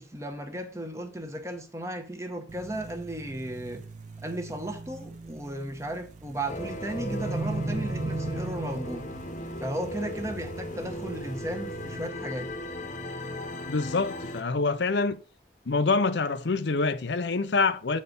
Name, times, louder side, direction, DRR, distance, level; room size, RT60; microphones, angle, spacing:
voice 1, 0.0-3.8 4.2-9.0 9.6-12.5, right 1 dB, 15° right, 1.0 m, -35 dB
sound 1, 2.5-12.1, right 2 dB, 40° right, 0.4 m, -38 dB
sound 2, 6.5-14.4, left 1 dB, 40° left, 1.0 m, -37 dB
voice 2, 13.7-15.2 15.7-18.0, left 3 dB, 70° left, 0.6 m, -26 dB
8.1 x 4.3 x 5.1 m
head